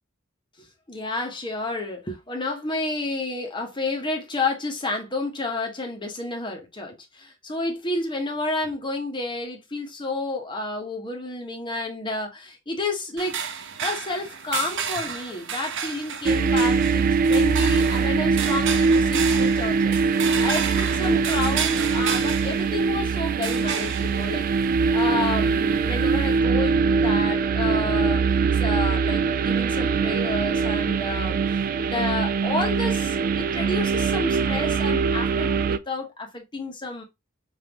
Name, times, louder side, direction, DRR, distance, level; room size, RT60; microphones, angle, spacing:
voice 1, 0.6-13.4 13.8-24.5 24.9-31.4 31.8-37.0, left 2 dB, 25° left, 1.1 m, -30 dB
sound 1, 13.2-26.4, right 7 dB, 60° right, 0.7 m, -32 dB
sound 2, 16.2-35.8, right 5 dB, 45° right, 0.3 m, -22 dB
5.3 x 2.8 x 2.9 m
head